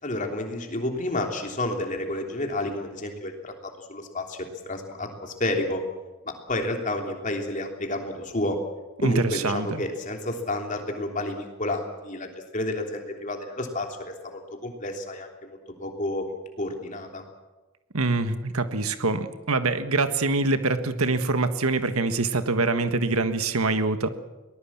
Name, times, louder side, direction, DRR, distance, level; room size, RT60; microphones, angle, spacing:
voice 1, 0.0-4.4 4.6-5.8 6.2-8.6 9.0-12.3 12.5-16.2 16.6-17.2, left 1 dB, 35° left, 3 dB, 3.2 m, -30 dB
voice 2, 9.0-9.8 17.9-24.1, right 3 dB, 85° right, 10 dB, 1.6 m, -25 dB
23.5 x 19.5 x 7.4 m, 1.1 s
head